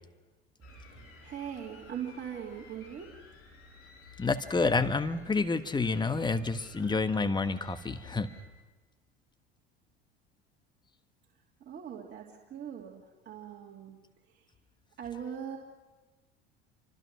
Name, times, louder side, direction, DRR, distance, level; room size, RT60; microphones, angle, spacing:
sound 1, 0.6-8.4, left 4 dB, 45° left, 6.9 m, -54 dB
voice 1, 0.9-3.1 11.6-14.0 14.2-14.5 15.0-15.6, right 8 dB, 35° right, -2 dB, 2.8 m, -41 dB
voice 2, 4.2-8.3, left 3 dB, 15° left, 9 dB, 1.4 m, -29 dB
28.0 x 25.0 x 6.2 m, 1.2 s
figure-of-eight pair, 70°, 32 cm